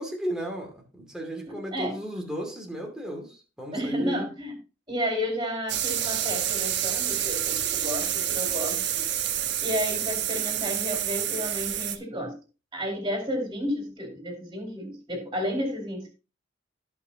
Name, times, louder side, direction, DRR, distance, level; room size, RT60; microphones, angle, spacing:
voice 1, 0.0-4.2 9.4-9.6, equal, 5° right, 0 dB, 2.5 m, -35 dB
voice 2, 1.5-2.0 3.7-4.5 4.9-9.0 9.6-12.3 12.7-16.1, equal, 25° right, 1 dB, 4.6 m, -32 dB
sound 1, 5.7-12.0, right 11 dB, 60° right, 1.2 m, -28 dB
17.5 x 5.9 x 2.9 m, 0.32 s
head